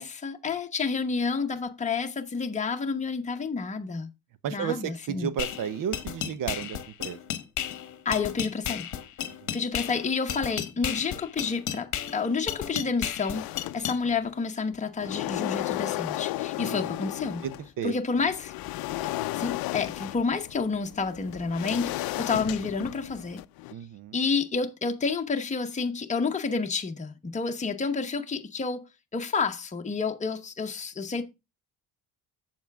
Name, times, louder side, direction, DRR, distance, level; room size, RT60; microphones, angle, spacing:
voice 1, 0.0-4.1 4.5-5.3 8.0-8.9 9.5-13.5 13.7-17.4 17.8-18.5 19.3-23.4 24.1-28.8 29.1-31.2, left 4 dB, 20° left, 1.0 m, -29 dB
voice 2, 4.4-7.2 9.3-9.5 16.6-16.8 17.4-17.9 23.7-24.2, right 8 dB, 55° right, 0.9 m, -33 dB
sound 1, 5.4-14.0, left 10 dB, 50° left, 1.1 m, -34 dB
sound 2, 13.3-14.3 14.7-17.7 18.2-23.7, left 17 dB, 65° left, 0.5 m, -34 dB
7.6 x 7.1 x 3.5 m
cardioid pair, 115°, 38 cm